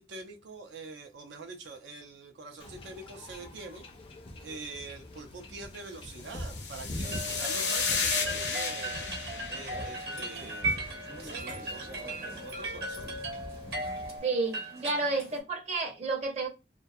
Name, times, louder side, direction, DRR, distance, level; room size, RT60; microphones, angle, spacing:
voice 1, 0.0-3.9 4.4-9.1 9.5-13.2, right 3 dB, 85° right, 0.5 m, -45 dB
Wind / Ocean / Boat Water vehicle, 2.6-14.2, left 1 dB, 30° left, 0.4 m, -44 dB
sound 1, 6.2-10.7, left 5 dB, 75° left, 0.7 m, -33 dB
sound 2, 7.0-15.4, right 1 dB, 60° right, 1.0 m, -37 dB
voice 2, 14.2-16.5, right 3 dB, 35° right, 0.6 m, -31 dB
2.2 x 2.2 x 2.6 m
head